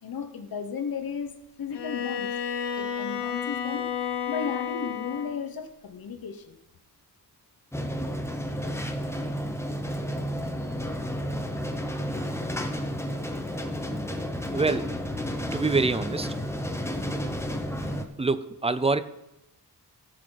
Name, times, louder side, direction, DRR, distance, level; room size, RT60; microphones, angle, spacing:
voice 1, 0.0-2.3 2.8-6.6, left 6 dB, 60° left, 7 dB, 1.1 m, -35 dB
Bowed string instrument, 1.7-5.4, left 7 dB, 85° left, 0.8 m, -31 dB
sound 1, 7.7-18.0, equal, 5° left, 0.8 m, -31 dB
voice 2, 14.5-15.0 15.5-16.3 18.2-19.0, right 3 dB, 15° right, 13 dB, 0.4 m, -25 dB
16.5 x 6.7 x 3.9 m, 0.89 s
wide cardioid pair, 155°, 40 cm